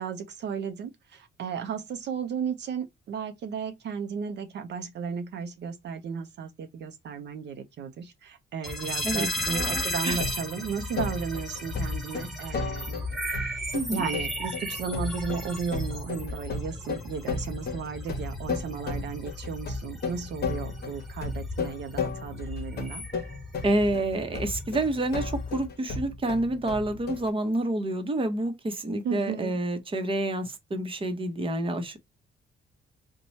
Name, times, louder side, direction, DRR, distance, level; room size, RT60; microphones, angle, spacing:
voice 1, 0.0-23.0 29.0-29.5, right 6 dB, 60° right, 0.6 m, -35 dB
sound 1, 8.6-25.7, left 1 dB, ahead, 1.2 m, -36 dB
voice 2, 9.0-10.2 13.7-14.1 23.6-32.0, right 1 dB, 25° right, 0.9 m, -28 dB
sound 2, 9.6-10.6 11.0-27.3, left 4 dB, 55° left, 0.9 m, -34 dB
3.0 x 2.2 x 4.0 m
cardioid pair, 90°, 20 cm